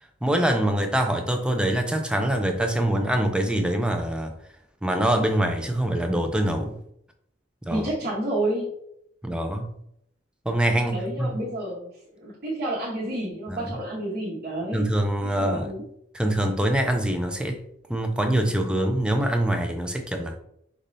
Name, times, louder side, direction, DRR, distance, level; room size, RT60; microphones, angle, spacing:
voice 1, 0.2-4.3 4.8-6.7 7.6-7.9 9.2-9.7 10.5-11.4 13.5-13.7 14.7-15.7 16.1-17.6 17.9-20.4, right 1 dB, 5° right, 4 dB, 0.4 m, -24 dB
voice 2, 7.7-8.7 10.9-14.9 15.2-15.8, right 1 dB, 55° right, -7 dB, 1.0 m, -30 dB
5.2 x 3.1 x 2.6 m, 0.72 s
head